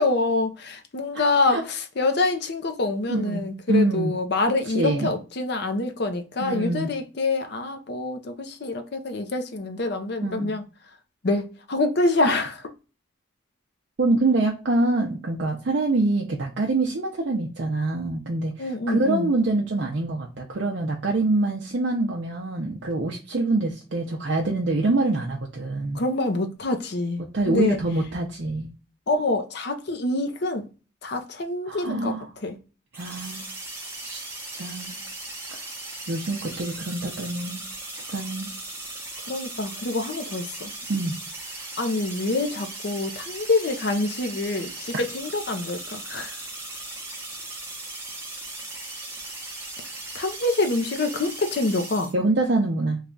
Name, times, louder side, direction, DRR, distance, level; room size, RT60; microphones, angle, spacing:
voice 1, 0.0-10.6 11.2-12.7 18.6-19.3 25.9-27.8 29.1-30.7 31.0-32.2 32.4-32.6 39.3-40.7 41.8-46.4 50.1-52.1, left 2 dB, 55° left, 0.6 m, -26 dB
voice 2, 3.1-4.1 4.7-5.1 6.4-6.9 10.2-10.5 14.0-26.0 27.3-28.7 31.7-32.3 32.9-33.5 34.0-34.2 34.5-35.0 35.5-35.6 36.1-37.6 37.9-38.5 40.9-41.1 52.1-53.0, right 2 dB, 55° right, 0.5 m, -25 dB
sound 1, 32.9-52.1, right 2 dB, 10° right, 0.8 m, -37 dB
3.2 x 2.3 x 3.7 m
head